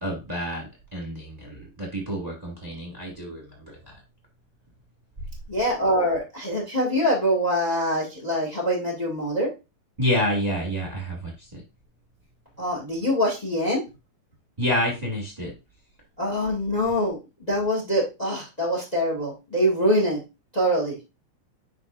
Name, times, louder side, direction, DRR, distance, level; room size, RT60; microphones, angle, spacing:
voice 1, 0.0-4.0 10.0-11.6 14.6-15.5, equal, 20° right, -1 dB, 1.0 m, -28 dB
voice 2, 5.5-9.5 12.6-13.8 16.2-20.2 20.5-21.0, equal, 75° left, -1 dB, 0.3 m, -24 dB
9.7 x 5.0 x 2.5 m, 0.26 s
omnidirectional pair, 4.4 m